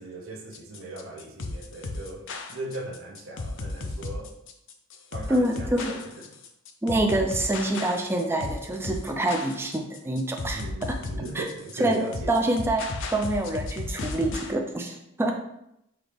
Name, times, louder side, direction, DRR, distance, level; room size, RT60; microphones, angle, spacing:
voice 1, 0.0-4.3 5.1-6.3 10.5-12.4, right 2 dB, 65° right, -1 dB, 0.7 m, -38 dB
sound 1, 0.5-14.5, left 2 dB, 60° left, 0.5 m, -35 dB
voice 2, 5.3-5.9 6.8-11.0 11.3-11.4 11.8-15.3, right 1 dB, 10° right, 3 dB, 0.4 m, -26 dB
6.0 x 2.5 x 3.3 m, 0.81 s
head